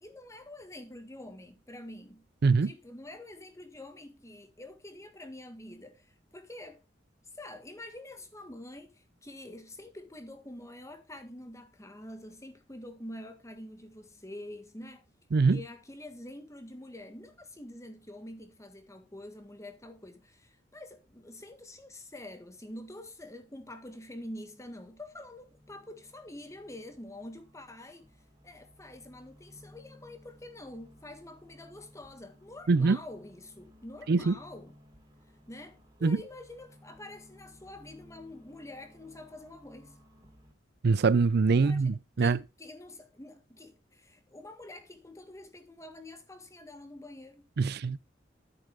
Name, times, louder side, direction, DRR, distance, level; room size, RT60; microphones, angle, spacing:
voice 1, 0.0-2.3 2.6-6.8 7.3-15.0 15.4-28.1 28.4-34.8 35.5-40.1 41.6-47.5, left 1 dB, 15° left, 1.7 m, -46 dB
sound 1, 24.2-40.5, left 1 dB, 20° right, 3.2 m, -59 dB
voice 2, 40.8-42.4 47.6-48.0, right 4 dB, 60° right, 0.5 m, -24 dB
11.0 x 9.0 x 3.5 m
head